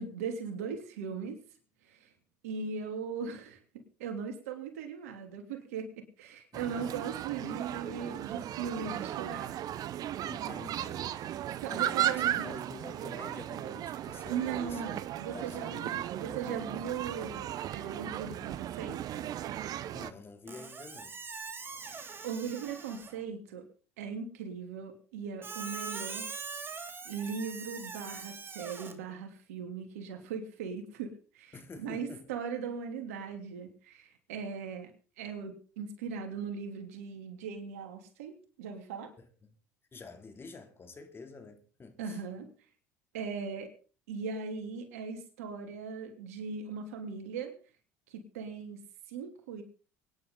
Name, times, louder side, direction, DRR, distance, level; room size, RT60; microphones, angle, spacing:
voice 1, 0.0-1.4 1.9-2.1 2.4-3.6 4.0-9.6 11.6-12.5 14.3-19.3 21.8-22.0 22.2-23.7 24.0-26.3 27.0-34.9 35.2-39.1 42.0-42.5 43.1-43.7 44.1-47.5 48.1-48.8 49.1-49.6, right 6 dB, 85° right, 3.1 m, -39 dB
voice 2, 6.5-7.0 10.2-11.1 11.5-14.8 15.3-15.7 19.9-21.2 31.5-32.3 39.2-39.3 39.9-42.2, left 4 dB, 30° left, 3.0 m, -48 dB
sound 1, 6.5-20.1, right 12 dB, 55° right, 0.9 m, -36 dB
Squeak, 20.5-23.2 25.4-28.9, right 4 dB, 30° right, 2.3 m, -42 dB
24.5 x 10.5 x 3.9 m
hypercardioid pair, 75°, 8 cm